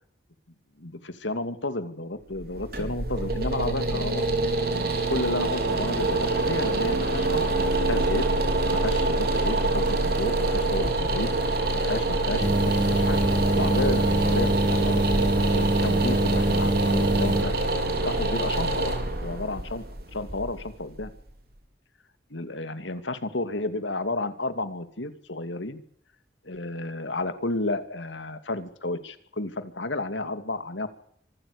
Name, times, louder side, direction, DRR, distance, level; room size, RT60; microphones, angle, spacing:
voice 1, 0.8-4.3 4.7-7.4 7.9-8.3 8.7-13.3 13.5-15.1 15.5-17.6 17.8-18.9 19.2-19.8 20.1-21.1 22.3-25.8 26.4-30.9, left 2 dB, 85° left, 10 dB, 2.7 m, -32 dB
sound 1, 2.3-21.3, right 2 dB, 55° right, 4.8 m, -26 dB
sound 2, 12.4-17.4, right 1 dB, 25° right, 3.0 m, -24 dB
26.0 x 13.5 x 8.8 m, 0.66 s
head